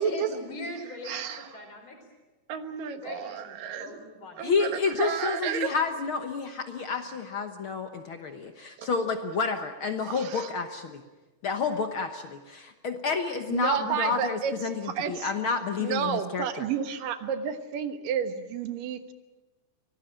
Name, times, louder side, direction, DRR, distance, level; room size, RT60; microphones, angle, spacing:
voice 1, 0.0-2.0 2.9-4.4, left 2 dB, 40° left, 4 dB, 5.1 m, -41 dB
voice 2, 1.0-1.6 2.5-4.0 4.4-5.7 8.8-8.9 10.1-10.5 13.5-14.5 14.8-15.3 15.8-19.1, right 8 dB, 90° right, 8 dB, 3.1 m, -31 dB
voice 3, 4.4-11.0 11.4-16.7, left 5 dB, 60° left, 6 dB, 1.4 m, -30 dB
24.5 x 18.5 x 8.9 m, 1.2 s
omnidirectional pair, 3.7 m